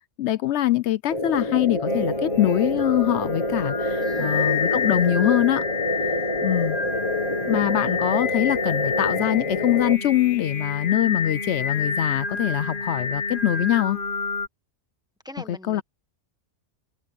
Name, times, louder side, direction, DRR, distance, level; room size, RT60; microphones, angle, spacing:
voice 1, 0.2-5.6 6.4-6.8 7.4-14.0 15.7-15.8, left 13 dB, 75° left, 0.8 m, -23 dB
sound 1, 1.1-10.0, left 1 dB, 25° left, 1.3 m, -27 dB
Singing, 1.9-14.5, left 5 dB, 45° left, 1.4 m, -29 dB
voice 2, 4.0-4.5 15.2-15.8, left 1 dB, 5° right, 1.3 m, -42 dB
omnidirectional pair, 1.2 m